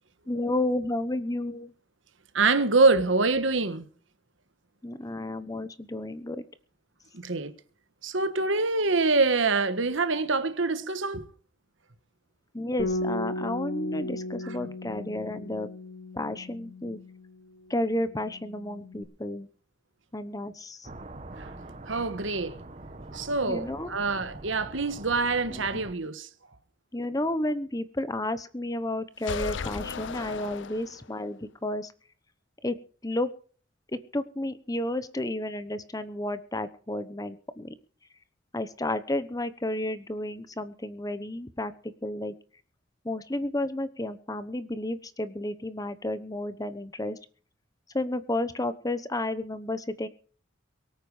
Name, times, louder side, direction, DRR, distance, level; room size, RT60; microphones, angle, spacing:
voice 1, 0.3-1.7 4.8-6.4 12.5-15.7 16.1-17.0 17.7-19.5 20.1-20.9 23.5-24.0 25.5-25.8 26.9-31.9 32.6-32.8 33.0-33.3 33.9-37.7 38.5-42.3 43.0-47.2 47.9-50.1, left 1 dB, 20° left, 0.9 m, -32 dB
voice 2, 2.3-3.8 7.1-7.5 8.0-11.3 21.4-21.5 21.9-22.6 23.1-26.3, right 3 dB, 70° right, 1.5 m, -25 dB
Bass guitar, 12.8-17.5 17.8-19.0, left 2 dB, 50° left, 3.3 m, -36 dB
sound 1, 20.8-25.9, right 2 dB, 35° right, 1.1 m, -44 dB
sound 2, 29.2-31.3, left 5 dB, 65° left, 0.6 m, -36 dB
23.5 x 9.1 x 4.9 m
head